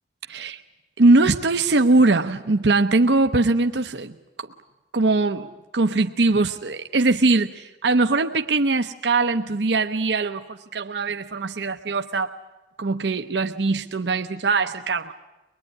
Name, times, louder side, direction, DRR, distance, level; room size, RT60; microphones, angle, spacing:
voice 1, 0.3-0.6 1.0-4.5 4.9-12.3 12.8-15.1, right 3 dB, 75° right, 7 dB, 0.8 m, -21 dB
23.5 x 21.0 x 9.8 m, 1.1 s
head